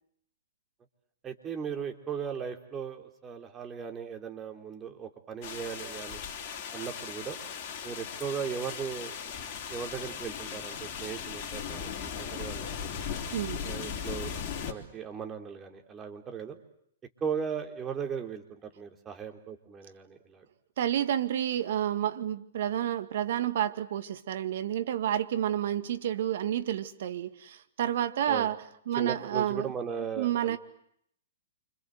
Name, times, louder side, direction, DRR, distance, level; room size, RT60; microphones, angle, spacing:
voice 1, 1.2-6.2 6.7-7.4 7.8-9.2 9.7-12.9 13.6-14.3 14.7-16.6 17.2-20.4 28.3-28.5 29.0-30.6, right 7 dB, 20° right, 3.7 m, -37 dB
sound 1, 5.4-14.7, left 7 dB, 40° left, 3.5 m, -38 dB
voice 2, 13.3-13.6 20.8-28.6 28.9-29.7 30.2-30.6, right 10 dB, 60° right, 2.0 m, -30 dB
28.5 x 26.0 x 8.0 m
hypercardioid pair, 120°, 0 cm